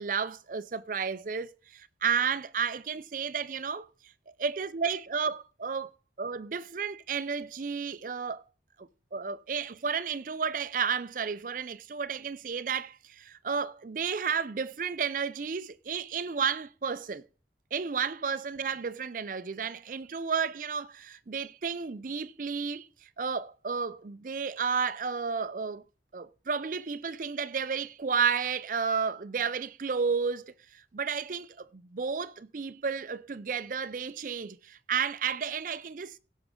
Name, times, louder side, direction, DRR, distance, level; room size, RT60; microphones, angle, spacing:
voice 1, 0.0-3.9 4.4-5.9 6.2-8.4 8.8-17.2 17.7-25.8 26.1-36.2, right 6 dB, 45° right, 0.5 m, -32 dB
16.0 x 6.1 x 3.7 m
head